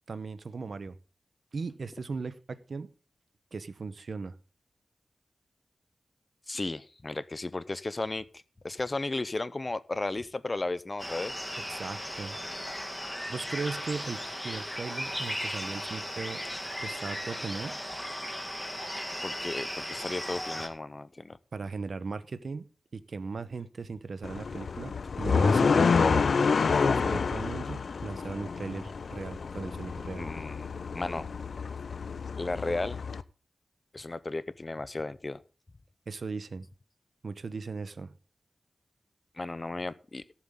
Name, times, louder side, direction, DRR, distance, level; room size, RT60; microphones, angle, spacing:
voice 1, 0.1-1.0 1.5-2.9 3.5-4.4 11.7-12.4 13.3-16.4 16.8-17.8 21.5-30.3 36.1-36.7 37.2-38.2, right 4 dB, 65° right, 13 dB, 0.9 m, -38 dB
voice 2, 6.5-11.3 19.2-21.4 30.2-30.7 30.9-31.3 32.4-33.0 33.9-35.4 39.4-40.2, left 2 dB, 35° left, 16 dB, 0.6 m, -34 dB
sound 1, 11.0-20.7, equal, ahead, 2.0 m, -36 dB
sound 2, 24.2-33.2, left 5 dB, 75° left, 0.5 m, -28 dB
17.0 x 7.3 x 3.7 m, 0.36 s
wide cardioid pair, 80°, 0 cm